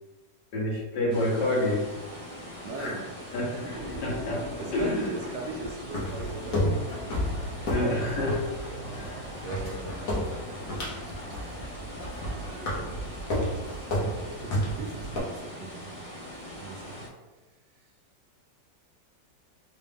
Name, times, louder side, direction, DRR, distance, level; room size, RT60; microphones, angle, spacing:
voice 1, 0.5-1.8 2.8-3.0 3.3-3.7 4.0-4.4 4.7-5.1 7.7-8.4 8.9-9.1, left 1 dB, 70° left, -4 dB, 1.5 m, -28 dB
sound 1, 1.1-17.1, equal, 40° right, 0.5 m, -42 dB
voice 2, 2.6-7.7 8.7-9.1 9.4-10.3 11.1-11.2 12.4-12.9 13.5-16.1 16.6-17.1 17.7-17.9, right 3 dB, 80° right, 3 dB, 1.2 m, -41 dB
sound 2, 3.6-12.8, left 1 dB, 25° left, 1.0 m, -43 dB
sound 3, 5.9-15.2, equal, 55° left, 1.3 m, -32 dB
3.9 x 2.3 x 3.4 m, 1.2 s
omnidirectional pair, 2.0 m